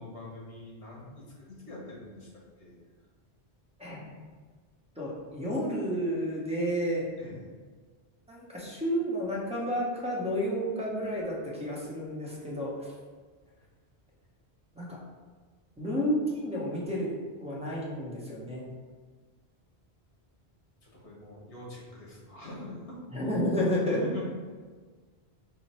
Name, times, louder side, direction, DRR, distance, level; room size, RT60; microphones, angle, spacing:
voice 1, 0.0-2.3 2.6-2.8 7.2-7.5 20.8-23.0 23.8-24.2, left 1 dB, 85° left, -4 dB, 1.4 m, -43 dB
voice 2, 3.8-4.1 5.0-7.1 8.3-12.9 14.7-15.0 15.8-17.1 17.4-18.6 23.1-24.0, equal, 5° right, -6 dB, 0.7 m, -31 dB
4.4 x 2.1 x 4.2 m, 1.5 s
omnidirectional pair, 1.1 m